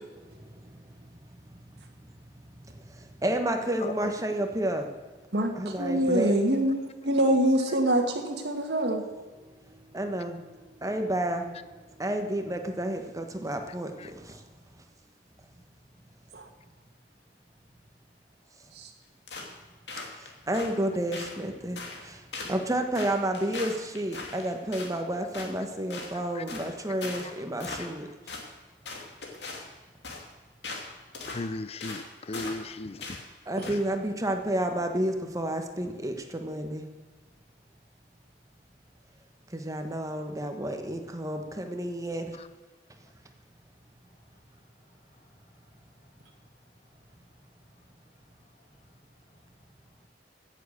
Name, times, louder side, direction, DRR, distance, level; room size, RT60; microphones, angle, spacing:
voice 1, 0.2-4.9 5.6-6.3 9.4-11.5 12.0-14.4 20.1-28.1 33.5-36.9 39.5-42.4, right 1 dB, 20° right, 1.3 m, -31 dB
voice 2, 3.8-4.1 14.0-14.1 26.1-26.4 27.2-27.3 27.8-27.9 30.8-31.0 31.3-33.2 42.3-42.5, left 2 dB, 35° left, 0.5 m, -37 dB
voice 3, 5.3-9.0 16.3-16.5 18.7-18.9 33.6-33.7, right 1 dB, 65° right, 1.7 m, -25 dB
sound 1, 19.3-19.6 19.9-20.7 21.1-21.4 21.8-22.1 22.3-22.6 22.9-24.9 25.3-25.5 25.9-26.1 26.5-26.7 27.0-27.3 27.6-28.0 28.3-28.5 28.9-29.7 30.0-30.2 30.6-30.9 31.1-31.4 31.8-32.1 32.3-32.7 33.0-33.2 33.6-33.8, left 3 dB, 75° left, 2.4 m, -39 dB
15.5 x 7.5 x 6.5 m
head